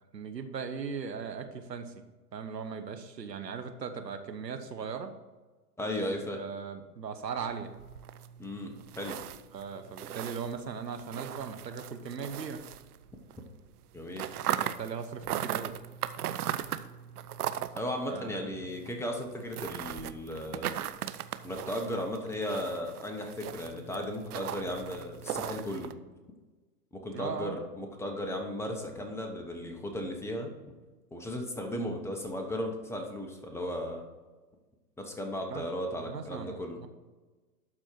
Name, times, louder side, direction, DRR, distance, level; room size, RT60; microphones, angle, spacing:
voice 1, 0.1-1.9 2.3-5.1 6.3-7.7 9.5-12.6 14.5-15.7 18.1-18.7 27.1-27.6 35.5-35.6 36.0-36.9, right 6 dB, 85° right, 7 dB, 1.2 m, -38 dB
voice 2, 5.8-6.4 8.4-8.7 9.0-9.2 13.9-14.2 17.7-20.8 21.4-25.9 26.9-30.5 31.1-34.0 35.0-36.8, left 1 dB, 5° left, 2 dB, 1.0 m, -35 dB
sound 1, 7.4-13.4 13.6-25.9, right 11 dB, 65° right, 0.7 m, -39 dB
12.0 x 4.4 x 4.5 m, 1.3 s
hypercardioid pair, 115°, 48 cm